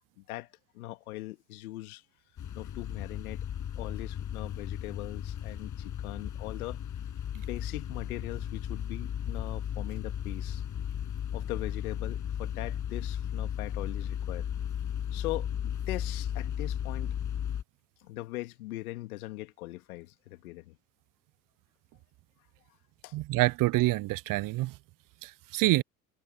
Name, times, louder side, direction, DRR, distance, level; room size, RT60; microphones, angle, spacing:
voice 1, 0.2-2.0 2.5-3.4 3.8-6.8 7.3-10.6 11.3-14.5 15.1-17.1 18.0-20.8 23.0-23.2, left 18 dB, 75° left, 2.4 m, -40 dB
sound 1, 2.4-17.6, left 9 dB, 45° left, 6.7 m, -35 dB
voice 2, 23.1-24.7 25.2-25.8, right 19 dB, 50° right, 0.7 m, -27 dB
hypercardioid pair, 65°, 44 cm